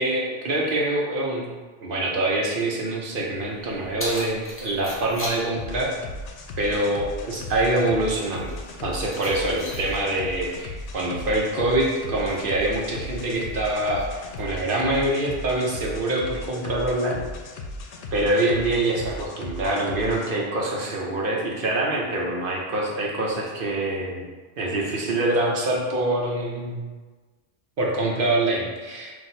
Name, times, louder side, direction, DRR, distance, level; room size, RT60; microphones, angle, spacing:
voice 1, 0.0-1.5 1.8-5.9 6.6-17.2 18.1-24.3 24.6-26.8 27.8-29.1, right 1 dB, 55° right, -2 dB, 0.8 m, -25 dB
Keys jangling, 3.3-14.4, equal, 15° left, 0.7 m, -41 dB
sound 1, 5.6-20.3, left 2 dB, 80° left, 0.8 m, -37 dB
5.9 x 2.6 x 2.6 m, 1.3 s
omnidirectional pair, 1.1 m